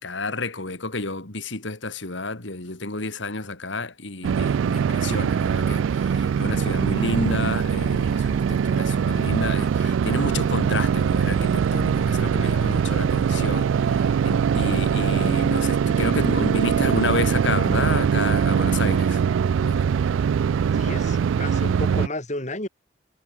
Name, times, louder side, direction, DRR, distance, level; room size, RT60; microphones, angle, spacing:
voice 1, 0.0-19.2 19.7-19.8, left 2 dB, 75° left, 2.7 m, -30 dB
sound 1, 4.2-22.1, right 7 dB, 85° right, 0.3 m, -22 dB
voice 2, 20.7-22.7, left 1 dB, 40° left, 3.8 m, -32 dB
head